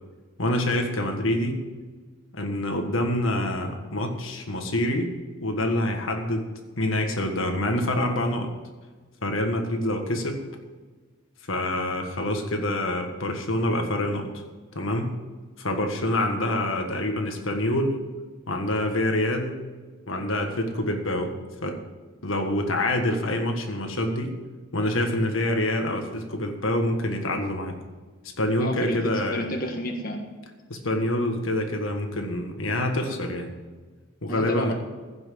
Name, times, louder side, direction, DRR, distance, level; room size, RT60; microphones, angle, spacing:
voice 1, 0.4-1.6 2.3-5.1 5.4-6.5 6.8-8.5 9.2-10.4 11.5-14.3 14.7-15.1 15.6-18.0 18.5-19.6 20.1-21.8 22.2-24.3 24.7-27.8 28.4-29.4 30.7-33.5 34.2-34.7, left 1 dB, 75° left, 3 dB, 1.6 m, -26 dB
voice 2, 28.6-30.2 34.3-34.7, left 1 dB, 45° left, 1 dB, 1.5 m, -31 dB
15.5 x 6.2 x 7.6 m, 1.4 s
head